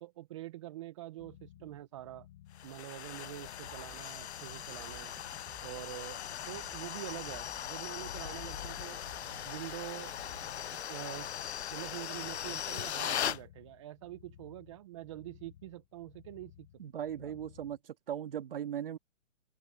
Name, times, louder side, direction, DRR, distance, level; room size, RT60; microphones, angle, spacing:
voice 1, 0.0-2.3 2.6-5.1 5.6-9.0 9.4-10.2 10.7-11.3 11.7-16.7 17.2-17.3, right 15 dB, 25° right, 1.1 m, -45 dB
sound 1, 1.2-17.8, left 12 dB, 15° left, 0.8 m, -58 dB
sound 2, 2.6-13.4, left 10 dB, 55° left, 0.6 m, -39 dB
sound 3, 3.7-11.0, right 6 dB, 5° right, 1.6 m, -58 dB
voice 2, 16.8-19.0, right 10 dB, 45° right, 2.1 m, -38 dB
open air
hypercardioid pair, 165°, 39 cm